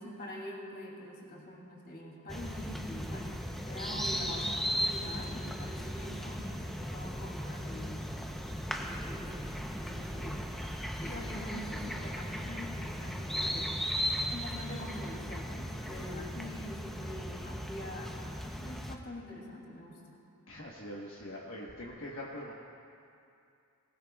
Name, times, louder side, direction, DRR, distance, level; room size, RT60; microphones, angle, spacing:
voice 1, 0.0-8.3 8.8-10.5 11.0-13.7 14.3-18.2 18.5-20.2, left 1 dB, 45° left, -2 dB, 2.7 m, -44 dB
sound 1, 2.3-18.9, equal, ahead, 0.7 m, -37 dB
voice 2, 20.5-22.5, left 1 dB, 65° left, -4 dB, 1.3 m, -43 dB
19.5 x 19.5 x 2.3 m, 2.6 s
head